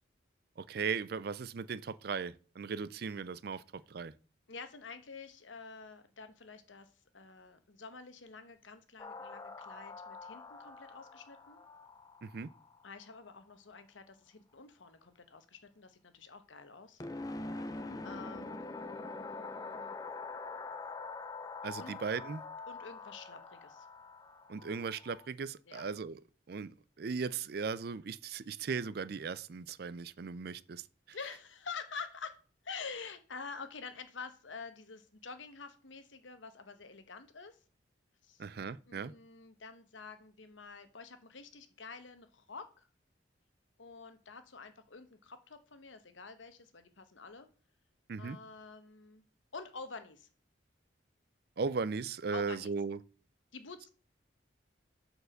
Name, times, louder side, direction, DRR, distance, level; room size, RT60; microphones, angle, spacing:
voice 1, 0.6-4.1 12.2-12.5 21.6-22.4 24.5-26.2 26.5-26.7 27.0-31.2 38.4-39.1 48.1-48.4 51.6-53.0, right 5 dB, 55° right, 0.4 m, -37 dB
voice 2, 4.5-11.6 12.8-17.0 18.0-20.6 21.7-21.9 22.7-23.9 25.7-25.8 31.1-37.6 38.2-38.5 38.8-42.9 43.8-47.5 48.2-49.2 49.5-50.3 52.3-52.7 53.5-53.9, left 5 dB, 85° left, 1.1 m, -48 dB
sound 1, 9.0-13.2 17.0-25.3, left 3 dB, 20° left, 0.6 m, -44 dB
6.6 x 4.7 x 6.5 m
head